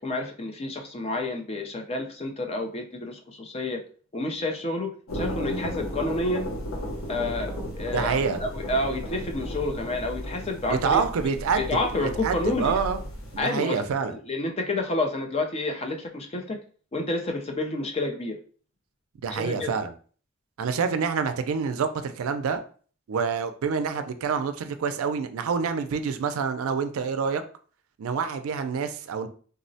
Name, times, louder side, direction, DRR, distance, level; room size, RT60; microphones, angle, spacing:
voice 1, 0.0-3.8 4.1-6.5 7.1-11.0 11.6-12.8 13.4-16.6 16.9-18.4 19.3-19.7, left 2 dB, 30° left, 3 dB, 0.4 m, -29 dB
sound 1, 5.1-13.4, equal, 85° left, 0.8 m, -34 dB
voice 2, 7.9-8.4 10.7-11.7 12.0-13.0 13.3-14.1 19.2-19.9 20.6-22.6 23.1-27.4 28.0-29.3, right 6 dB, 85° right, 9 dB, 0.4 m, -27 dB
3.7 x 2.0 x 2.6 m, 0.43 s
head